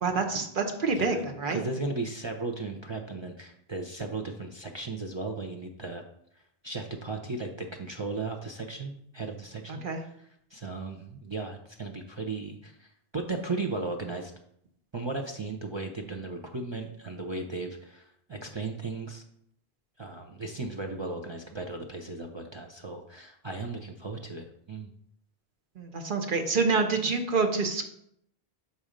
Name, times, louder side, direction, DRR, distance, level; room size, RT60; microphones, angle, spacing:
voice 1, 0.0-1.6 9.7-10.0 25.8-27.9, right 4 dB, 55° right, 5 dB, 1.0 m, -27 dB
voice 2, 1.5-6.0 6.6-14.3 14.9-19.2 20.0-24.9 27.0-27.2, right 3 dB, 35° right, 2 dB, 0.5 m, -36 dB
6.2 x 4.1 x 5.1 m, 0.71 s
omnidirectional pair, 1.1 m